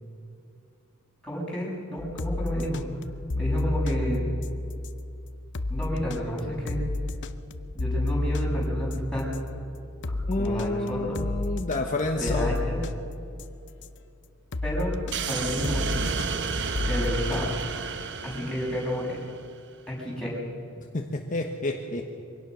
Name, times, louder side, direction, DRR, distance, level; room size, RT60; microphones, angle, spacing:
voice 1, 1.2-2.8 3.3-4.3 5.7-6.8 7.7-9.3 10.4-11.2 12.2-12.8 14.6-14.9 15.3-16.0 16.8-17.5 18.2-19.2 19.9-20.4, equal, 5° left, -5 dB, 6.9 m, -31 dB
sound 1, 2.0-14.0 14.5-17.7, left 2 dB, 55° left, 0.8 m, -31 dB
voice 2, 10.3-12.5 20.9-22.0, left 2 dB, 40° left, 2 dB, 1.2 m, -29 dB
sound 2, 15.1-19.5, right 5 dB, 55° right, 1.0 m, -32 dB
23.5 x 17.5 x 6.3 m, 2.7 s
head